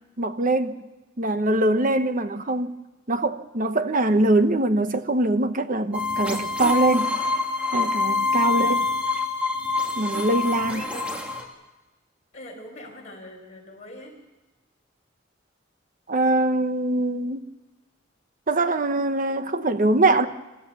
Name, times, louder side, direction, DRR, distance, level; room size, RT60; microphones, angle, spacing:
voice 1, 0.2-0.8 1.2-2.8 3.1-7.2 7.7-8.8 10.0-10.8 16.1-17.4 18.5-20.3, right 2 dB, 45° right, 1.1 m, -22 dB
sound 1, 5.9-11.4, left 3 dB, 5° right, 2.5 m, -25 dB
voice 2, 8.5-8.8 10.7-11.2 12.3-14.2, left 1 dB, 40° left, 5.8 m, -42 dB
27.0 x 15.0 x 7.0 m
head